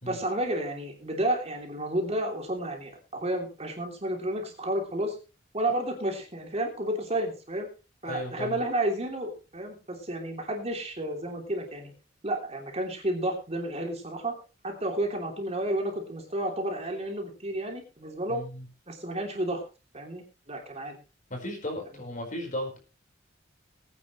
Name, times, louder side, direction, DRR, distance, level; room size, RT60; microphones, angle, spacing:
voice 1, 0.1-5.2 5.5-7.7 8.0-11.9 12.2-14.4 14.6-18.4 18.9-19.6 19.9-21.0, right 1 dB, 35° right, 2 dB, 3.1 m, -31 dB
voice 2, 8.0-8.6 18.3-18.7 21.3-22.8, left 1 dB, 45° left, 3 dB, 4.8 m, -35 dB
20.0 x 9.7 x 3.2 m, 0.32 s
head